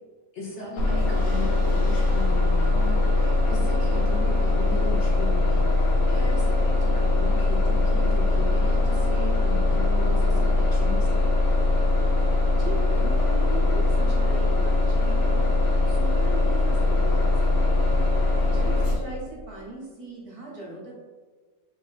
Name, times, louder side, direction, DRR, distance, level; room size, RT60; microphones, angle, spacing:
voice 1, 0.3-11.3, left 3 dB, 45° left, -4 dB, 1.2 m, -37 dB
Bus, 0.8-18.9, left 2 dB, 85° left, 1.6 m, -21 dB
voice 2, 12.5-21.0, right 2 dB, 30° right, -4 dB, 0.7 m, -39 dB
3.7 x 2.7 x 4.1 m, 1.4 s
omnidirectional pair, 1.9 m